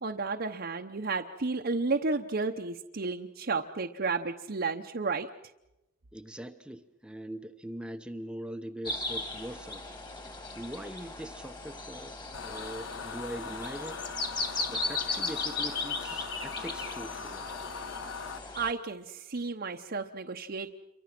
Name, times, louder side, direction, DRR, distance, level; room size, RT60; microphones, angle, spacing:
voice 1, 0.0-5.3 18.6-20.7, right 4 dB, 55° right, 3 dB, 0.9 m, -32 dB
voice 2, 6.1-9.8 10.5-12.2 12.4-14.0 14.7-17.5, right 1 dB, 5° right, 8 dB, 0.9 m, -42 dB
sound 1, 8.8-18.7, left 3 dB, 25° left, 2.8 m, -37 dB
sound 2, 12.3-18.4, left 5 dB, 90° left, 1.3 m, -41 dB
28.0 x 24.0 x 6.1 m, 0.94 s
head